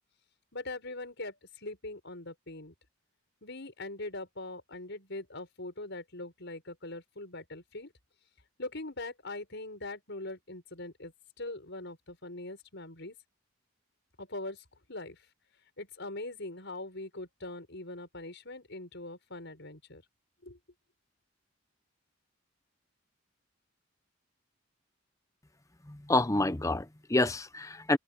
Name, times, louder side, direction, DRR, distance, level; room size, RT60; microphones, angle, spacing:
voice 1, 0.5-2.7 3.4-7.9 8.6-13.2 14.2-15.2 15.8-20.0 20.4-20.6, left 2 dB, 60° left, 6.8 m, -42 dB
voice 2, 25.9-28.0, left 2 dB, 15° left, 0.8 m, -28 dB
head